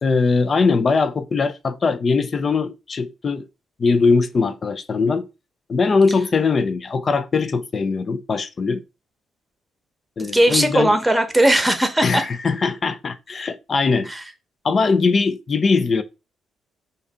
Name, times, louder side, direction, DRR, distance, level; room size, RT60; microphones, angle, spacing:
voice 1, 0.0-3.5 3.8-5.3 5.7-8.8 10.2-11.0 12.0-14.1 14.6-16.0, left 4 dB, 40° left, 0.5 m, -20 dB
voice 2, 10.2-12.2 14.1-14.2, right 1 dB, 10° right, 1.0 m, -18 dB
5.5 x 2.7 x 3.6 m
cardioid pair, 90°, 0 cm